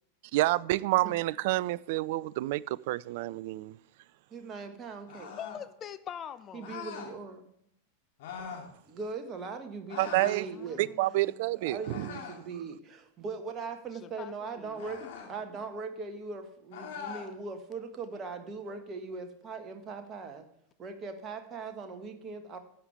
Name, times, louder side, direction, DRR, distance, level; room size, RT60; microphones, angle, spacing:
voice 1, 0.3-3.8 10.0-10.5 10.8-12.1, right 18 dB, 50° right, 0.3 m, -28 dB
voice 2, 4.3-5.3 6.5-7.5 8.9-10.9 11.6-15.0 15.3-20.4 20.8-22.6, right 4 dB, 25° right, 1.5 m, -40 dB
sound 1, 5.1-5.6 6.6-7.1 8.2-8.7 9.9-10.4 11.8-12.5 14.7-15.3 16.7-17.3, left 7 dB, 50° left, 2.8 m, -42 dB
voice 3, 5.3-6.7 10.1-11.5 13.9-15.1, left 9 dB, 25° left, 0.8 m, -45 dB
12.5 x 8.8 x 3.4 m
figure-of-eight pair, 90°, 0 cm